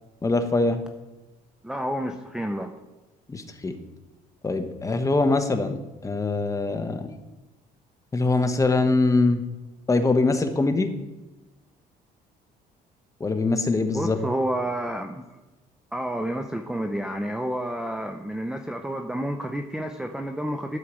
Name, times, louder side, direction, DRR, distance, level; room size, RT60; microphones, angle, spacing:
voice 1, 0.2-0.8 3.3-3.8 4.4-5.8 6.0-7.1 8.1-9.4 9.9-10.9 13.2-14.2, left 3 dB, 20° left, 7 dB, 1.1 m, -23 dB
voice 2, 1.6-2.7 13.9-15.3 15.9-20.8, right 1 dB, 5° right, 5 dB, 0.6 m, -30 dB
12.0 x 4.7 x 7.5 m, 1.1 s
cardioid pair, 110°, 17 cm